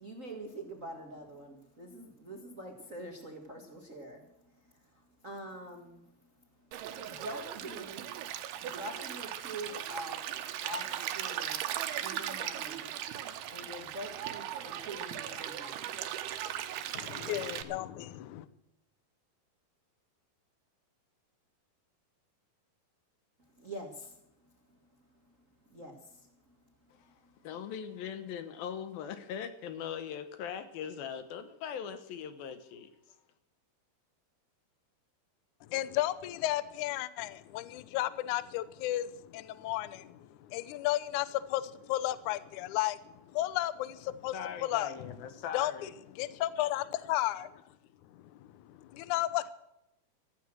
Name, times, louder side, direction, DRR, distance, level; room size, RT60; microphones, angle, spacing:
voice 1, 0.0-17.2 23.6-27.4, right 1 dB, 50° right, 0.9 m, -46 dB
Stream, 6.7-17.6, right 11 dB, 80° right, 3.0 m, -38 dB
voice 2, 16.9-18.5 35.7-44.4 44.6-45.1 45.5-45.9 46.2-47.5 48.4-49.5, left 15 dB, 90° left, 1.7 m, -33 dB
voice 3, 27.4-32.9 44.3-45.9, left 8 dB, 70° left, 2.7 m, -40 dB
15.0 x 13.5 x 6.2 m
omnidirectional pair, 4.6 m